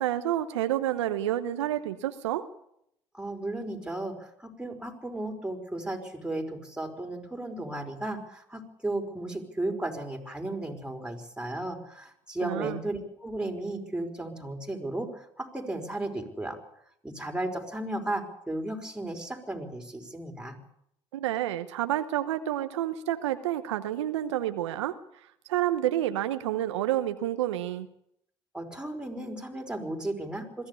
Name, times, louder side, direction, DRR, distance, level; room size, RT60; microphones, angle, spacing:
voice 1, 0.0-2.5 12.4-12.8 21.1-24.9 25.5-27.9, right 12 dB, 85° right, 10 dB, 1.0 m, -29 dB
voice 2, 3.1-16.6 17.0-20.6 28.5-30.7, right 1 dB, 5° right, 2 dB, 5.1 m, -35 dB
21.5 x 15.0 x 8.4 m, 0.75 s
hypercardioid pair, 60°, 15 cm